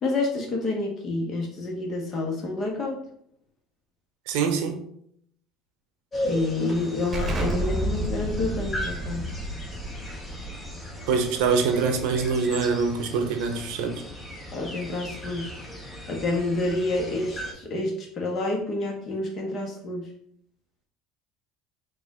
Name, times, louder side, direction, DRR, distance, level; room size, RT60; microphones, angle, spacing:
voice 1, 0.0-3.0 6.2-9.2 14.5-15.5 16.1-20.1, left 2 dB, 45° left, 0 dB, 1.3 m, -28 dB
voice 2, 4.3-4.8 11.1-14.0, right 5 dB, 75° right, 5 dB, 0.6 m, -24 dB
sound 1, 6.1-17.5, left 1 dB, 25° left, 1.2 m, -37 dB
Explosion, 7.1-12.5, right 1 dB, 30° right, 0.9 m, -31 dB
4.2 x 2.6 x 3.6 m, 0.69 s
supercardioid pair, 85°, 0 cm